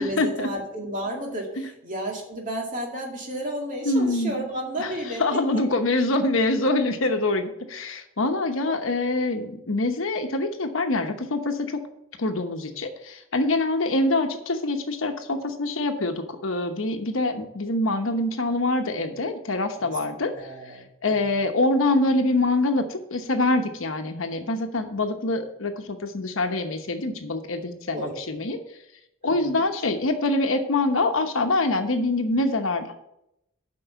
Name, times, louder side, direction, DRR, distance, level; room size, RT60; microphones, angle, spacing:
voice 1, 0.0-5.4 19.7-19.9 20.3-21.4 27.9-28.2 29.2-29.6, right 1 dB, 40° right, 0 dB, 2.2 m, -32 dB
voice 2, 3.8-4.4 4.8-4.9 5.2-11.8 12.2-20.5 21.0-28.6 29.2-32.9, left 2 dB, 70° left, 6 dB, 1.0 m, -25 dB
7.7 x 5.4 x 6.9 m, 0.81 s
head